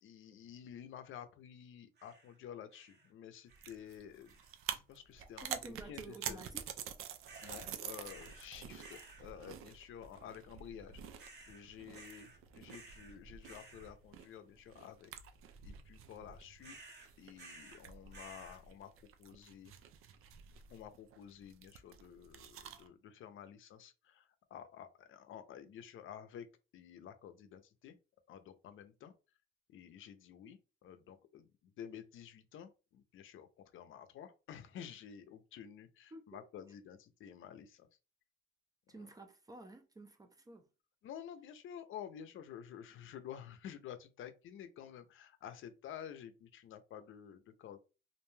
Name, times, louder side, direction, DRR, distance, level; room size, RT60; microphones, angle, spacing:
voice 1, 0.0-4.4 4.7-5.6 5.8-6.4 7.4-11.0 11.5-15.1 15.6-16.8 17.2-18.9 19.2-19.7 20.7-26.5 26.7-28.0 28.3-29.1 29.7-33.5 33.7-37.9 39.0-39.1 41.0-47.8, left 9 dB, 70° left, 0.5 m, -51 dB
sound 1, 2.0-2.4 2.7-3.1 3.5-3.9 4.3-4.7 7.2-7.7 8.0-8.5 8.8-9.3 11.2-11.6 11.9-12.4 12.7-13.2 13.4-13.9 16.6-17.8 18.1-18.6, right 3 dB, 55° right, 0.8 m, -56 dB
sound 2, 3.5-22.9, right 9 dB, 90° right, 0.4 m, -48 dB
voice 2, 5.4-6.7 22.7-22.9 36.1-36.4 36.7-36.8 38.9-40.7, right 2 dB, 15° right, 0.4 m, -52 dB
2.5 x 2.2 x 3.0 m
cardioid pair, 135°, 21 cm